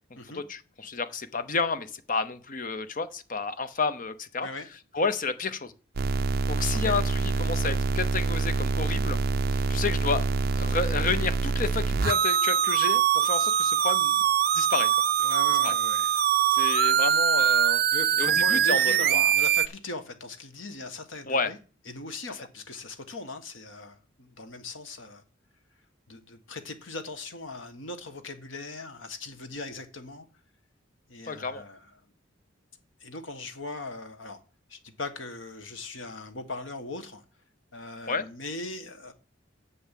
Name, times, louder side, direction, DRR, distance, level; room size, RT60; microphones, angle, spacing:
voice 1, 0.1-4.5 4.9-5.7 6.5-9.2 9.5-10.2 10.6-14.2 14.5-14.9 15.6-15.7 16.5-17.8 18.2-19.3 21.3-21.5 31.3-31.6 38.1-38.3, left 4 dB, 40° left, 0.8 m, -30 dB
sound 1, 6.0-19.7, right 7 dB, 50° right, 0.4 m, -24 dB
voice 2, 15.2-16.2 17.9-21.6 21.8-25.2 26.1-30.3 31.1-31.9 33.0-34.4 34.7-37.2 37.7-39.1, left 2 dB, 80° left, 1.5 m, -39 dB
7.7 x 6.9 x 7.5 m
head